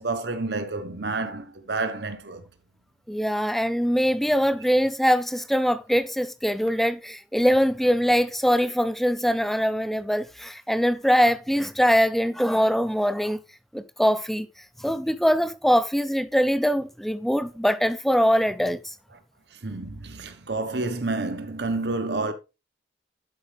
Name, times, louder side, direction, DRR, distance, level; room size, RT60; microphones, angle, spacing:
voice 1, 0.0-2.4 19.6-22.3, right 3 dB, 65° right, 1.2 m, -29 dB
voice 2, 3.1-13.4 13.7-14.5 14.8-18.9, equal, ahead, 0.5 m, -22 dB
11.5 x 5.0 x 3.4 m
head